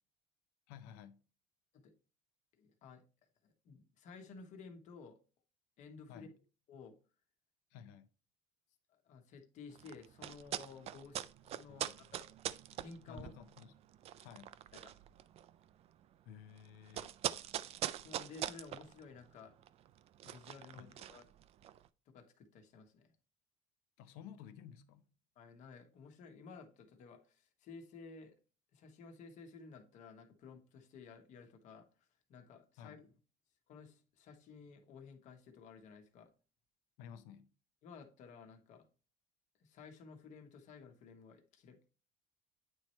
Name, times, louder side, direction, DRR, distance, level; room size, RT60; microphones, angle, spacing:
voice 1, 0.7-1.2 6.1-6.4 7.7-8.1 11.7-12.1 13.1-13.7 14.2-14.5 16.3-17.1 20.7-20.9 24.0-25.1 32.8-33.0 37.0-37.5, left 8 dB, 85° left, 0.7 m, -53 dB
voice 2, 2.5-3.0 3.4-5.2 5.8-6.3 6.7-6.9 8.9-12.3 12.7-13.4 14.7-14.9 18.0-19.5 20.2-21.2 22.1-23.1 25.4-28.3 28.7-31.9 32.3-33.1 33.7-36.3 37.8-38.9 39.6-41.9, left 5 dB, 60° left, 1.2 m, -54 dB
sound 1, 9.7-21.9, right 11 dB, 45° right, 0.4 m, -44 dB
8.9 x 3.1 x 4.3 m
cardioid pair, 120°, 14 cm